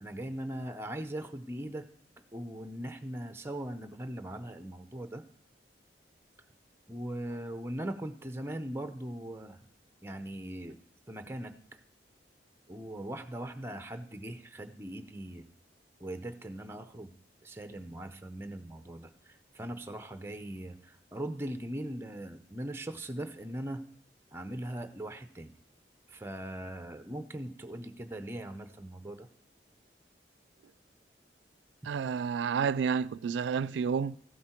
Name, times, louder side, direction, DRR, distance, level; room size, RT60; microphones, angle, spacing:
voice 1, 0.0-1.9 2.3-5.3 6.9-9.7 10.0-10.8 11.1-11.8 12.7-15.4 16.0-17.1 17.4-23.8 24.3-25.5 26.1-29.3, right 1 dB, 15° right, 0.7 m, -40 dB
voice 2, 31.8-34.1, right 6 dB, 85° right, 0.3 m, -30 dB
14.5 x 8.5 x 4.4 m
head